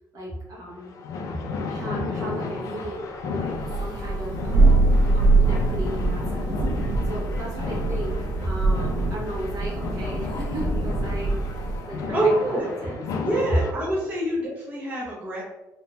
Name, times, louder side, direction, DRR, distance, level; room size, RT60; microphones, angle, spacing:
voice 1, 0.1-0.9 1.7-4.6 5.1-6.6 7.0-13.3, right 1 dB, 55° right, -4 dB, 0.9 m, -36 dB
sound 1, 0.8-13.7, left 4 dB, 55° left, 0.3 m, -33 dB
Thunder, 3.5-12.0, right 2 dB, 80° right, 0.4 m, -23 dB
voice 2, 12.1-12.7 13.2-15.4, right 1 dB, 20° right, -6 dB, 0.5 m, -25 dB
2.7 x 2.2 x 2.9 m, 1.0 s
cardioid pair, 175°, 7 cm